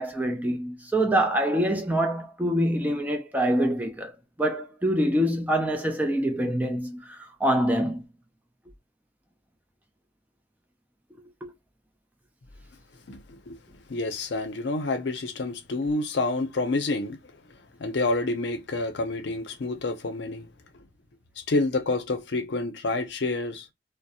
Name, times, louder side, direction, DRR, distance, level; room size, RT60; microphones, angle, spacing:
voice 1, 0.0-4.1 4.4-8.0 11.4-11.5, right 1 dB, 10° right, 0.4 m, -25 dB
voice 2, 13.1-13.6 13.9-17.2 17.8-20.5 21.4-23.7, left 2 dB, 70° left, 0.5 m, -28 dB
2.3 x 2.0 x 2.7 m
head